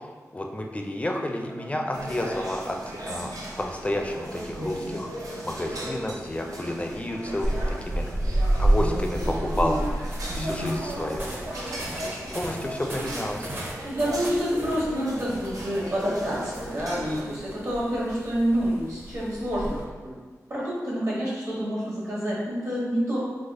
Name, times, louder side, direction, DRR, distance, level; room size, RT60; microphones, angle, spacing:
voice 1, 0.3-5.1 5.4-8.1 8.6-9.8 10.4-11.3 12.3-13.5, left 1 dB, 20° left, 2 dB, 0.4 m, -30 dB
sound 1, 1.9-17.2, right 1 dB, 80° right, 0.6 m, -37 dB
voice 2, 4.5-4.9 8.7-9.8 10.3-10.8 12.7-12.8 13.8-20.1 20.5-23.2, equal, 60° right, -7 dB, 1.3 m, -28 dB
sound 2, 7.4-19.8, right 1 dB, 35° right, 0.7 m, -31 dB
3.3 x 2.0 x 3.6 m, 1.4 s
cardioid pair, 55°, 6 cm